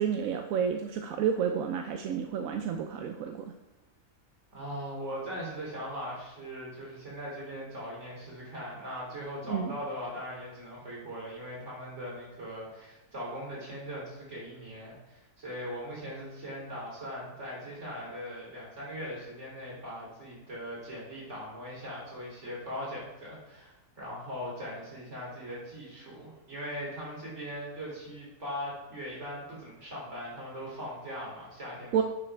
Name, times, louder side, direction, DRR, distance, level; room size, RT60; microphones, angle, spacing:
voice 1, 0.0-3.5 9.5-9.7 31.9-32.0, right 7 dB, 70° right, 6 dB, 0.9 m, -30 dB
voice 2, 4.5-32.0, equal, 50° right, -5 dB, 3.3 m, -40 dB
9.8 x 6.5 x 3.4 m, 1.0 s
omnidirectional pair, 1.6 m